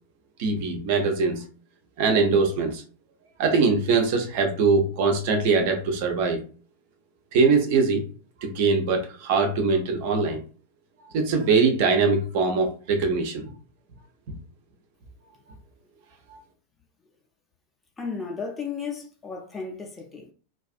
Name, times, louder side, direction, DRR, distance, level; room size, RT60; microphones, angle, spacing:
voice 1, 0.4-1.4 2.0-2.8 3.4-6.4 7.3-8.0 8.4-10.4 11.1-13.5 16.3-16.4, right 4 dB, 50° right, 0.6 m, -22 dB
voice 2, 18.0-20.3, left 5 dB, 10° left, 0.5 m, -34 dB
2.4 x 2.3 x 2.3 m
figure-of-eight pair, 90°, 0 cm